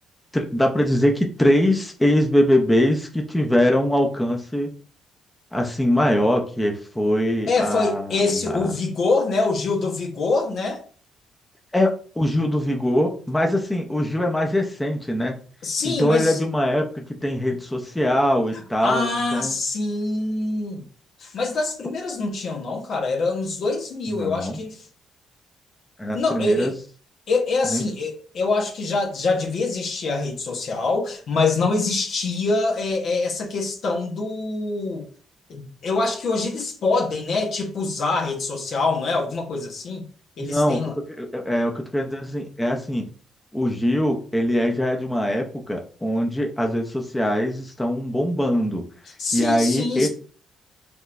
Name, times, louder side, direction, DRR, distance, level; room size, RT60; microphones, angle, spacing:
voice 1, 0.3-4.7 5.5-8.7 11.7-15.4 15.8-19.5 24.1-24.6 26.0-26.7 27.7-27.8 40.4-43.1 43.5-48.8 49.3-50.1, left 1 dB, 10° left, 0.7 m, -22 dB
voice 2, 7.5-10.8 15.6-16.4 18.5-20.8 21.2-24.8 26.1-26.7 27.3-35.1 35.5-40.0 40.4-41.0 49.2-50.1, left 3 dB, 60° left, 1.2 m, -25 dB
5.2 x 3.1 x 2.6 m
cardioid pair, 90°, 0 cm